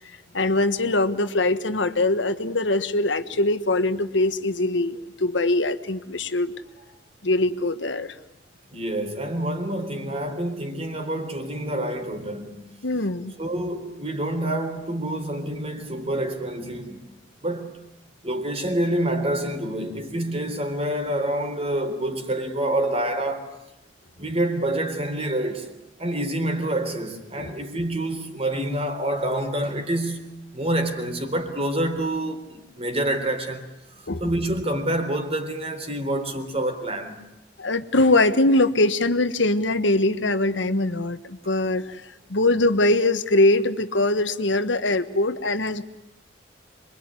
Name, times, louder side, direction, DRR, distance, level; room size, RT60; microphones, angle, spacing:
voice 1, 0.3-6.5 7.2-8.2 12.8-13.3 27.4-27.5 34.1-34.3 37.6-45.8, left 2 dB, 80° left, 1.4 m, -22 dB
voice 2, 8.7-12.6 13.4-17.0 17.4-17.8 18.2-23.5 24.2-25.7 26.0-33.7 34.0-37.2, right 1 dB, 35° right, 3.7 m, -27 dB
26.5 x 23.0 x 9.8 m
head